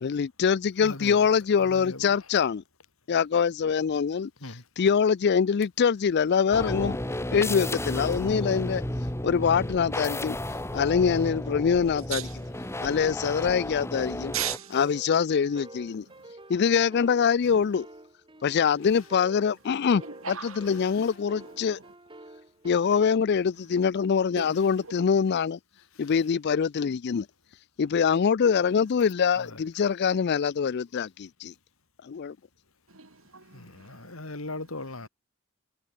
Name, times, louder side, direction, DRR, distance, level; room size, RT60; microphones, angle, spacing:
voice 1, 0.0-2.6 3.1-4.3 4.8-7.0 7.3-8.8 9.2-10.4 10.7-12.2 12.8-14.3 14.7-16.0 16.5-17.9 18.4-20.0 20.3-21.8 22.6-25.6 26.0-27.3 27.8-31.5 32.0-32.4, left 6 dB, 50° left, 0.4 m, -24 dB
voice 2, 0.8-1.3 1.6-2.3 4.4-4.6 13.3-13.4 18.8-19.1 20.7-21.2 26.0-26.3 29.3-29.6 33.5-35.1, left 2 dB, 70° left, 3.2 m, -40 dB
sound 1, 6.5-14.6, left 1 dB, 15° left, 2.0 m, -33 dB
voice 3, 12.0-12.4 12.7-12.8 14.3-14.9 15.9-16.3 17.4-17.7 20.0-20.9 21.3-21.9 24.4-25.1 32.9-34.2, right 9 dB, 70° right, 5.2 m, -39 dB
sound 2, 14.5-23.2, right 2 dB, 25° right, 4.3 m, -49 dB
head